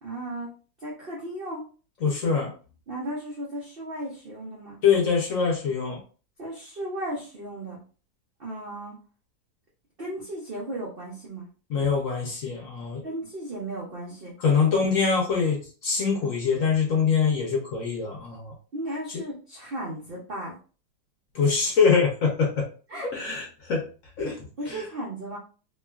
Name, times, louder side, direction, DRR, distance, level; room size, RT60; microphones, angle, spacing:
voice 1, 0.0-0.5 0.8-1.6 2.9-4.8 6.4-7.8 8.4-9.0 10.0-11.5 13.0-14.3 18.7-20.6 22.9-23.1 24.6-25.4, right 1 dB, 75° right, -4 dB, 0.5 m, -35 dB
voice 2, 2.0-2.5 4.8-6.0 11.7-13.1 14.4-18.5 19.1-19.2 21.3-22.6 23.1-23.8 24.2-24.8, left 5 dB, 60° left, -1 dB, 0.9 m, -24 dB
2.9 x 2.4 x 2.3 m, 0.37 s
omnidirectional pair, 2.0 m